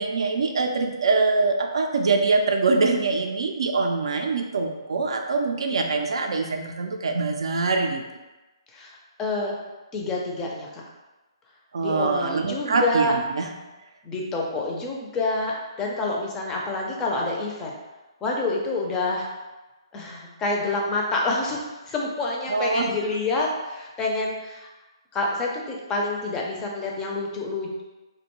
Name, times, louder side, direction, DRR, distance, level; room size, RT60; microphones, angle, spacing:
voice 1, 0.0-8.0 11.7-13.5 22.5-22.9, right 3 dB, 75° right, 4 dB, 0.3 m, -24 dB
voice 2, 9.2-9.5 9.9-10.8 11.8-13.1 14.1-15.5 15.8-17.8 18.2-19.3 19.9-21.6 21.9-24.7 25.1-27.8, left 2 dB, 15° left, -2 dB, 0.4 m, -27 dB
2.5 x 2.1 x 2.9 m, 1.1 s
hypercardioid pair, 150°, 3 cm